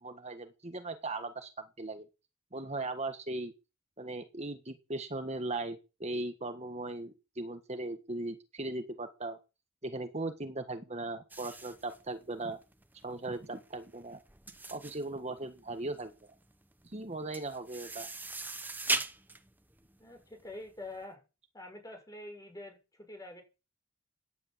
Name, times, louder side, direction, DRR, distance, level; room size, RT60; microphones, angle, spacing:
voice 1, 0.0-1.5 1.8-2.1 2.5-3.5 4.0-9.4 9.8-12.6 13.0-14.2 14.7-16.3 16.8-18.1, right 2 dB, 35° right, 7 dB, 1.5 m, -38 dB
sound 1, 11.3-20.9, right 3 dB, 10° right, 1.1 m, -39 dB
voice 2, 20.0-21.2 21.5-23.4, left 2 dB, 15° left, 4 dB, 6.8 m, -46 dB
17.5 x 10.5 x 7.4 m, 0.30 s
head